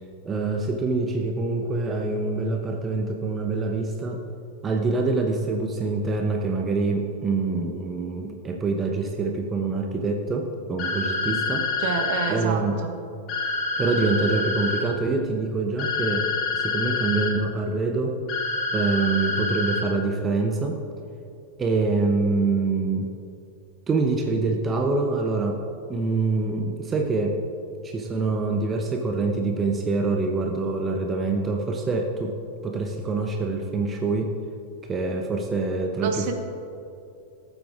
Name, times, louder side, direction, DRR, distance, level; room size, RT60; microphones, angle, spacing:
voice 1, 0.2-4.2 4.6-11.7 12.3-12.8 13.8-18.2 18.7-20.8 21.6-23.1 23.9-25.6 25.9-27.4 27.8-32.4 32.6-34.3 34.8-36.3, right 3 dB, 20° right, 3 dB, 0.9 m, -25 dB
sound 1, 10.8-12.3 13.3-14.8 15.8-17.3 18.3-19.8, left 4 dB, 40° left, 1.8 m, -27 dB
voice 2, 11.8-12.9 36.0-36.3, right 6 dB, 50° right, 5 dB, 1.3 m, -28 dB
18.5 x 8.0 x 3.7 m, 2.6 s
figure-of-eight pair, 90°, 0 cm